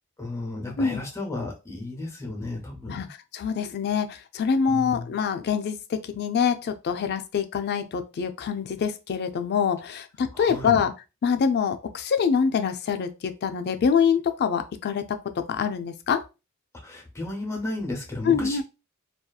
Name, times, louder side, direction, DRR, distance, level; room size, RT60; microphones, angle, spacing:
voice 1, 0.2-3.1 4.7-5.1 10.3-10.8 16.8-18.6, left 2 dB, 15° left, 0.7 m, -33 dB
voice 2, 3.3-10.9 11.2-15.0 15.5-16.2 18.2-18.6, left 6 dB, 50° left, 0.3 m, -25 dB
2.7 x 2.3 x 2.3 m
head